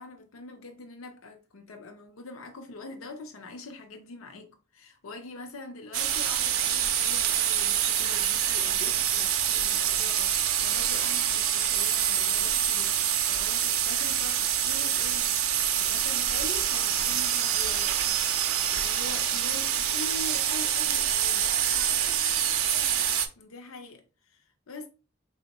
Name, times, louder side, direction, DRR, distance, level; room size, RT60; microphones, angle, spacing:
voice 1, 0.0-21.4 21.9-22.2 23.4-24.9, left 2 dB, 80° left, 0.5 m, -44 dB
sound 1, 5.9-23.3, right 9 dB, 90° right, 0.5 m, -26 dB
voice 2, 10.9-11.4 21.2-23.0, equal, 10° left, 1.8 m, -50 dB
3.5 x 2.1 x 4.0 m
head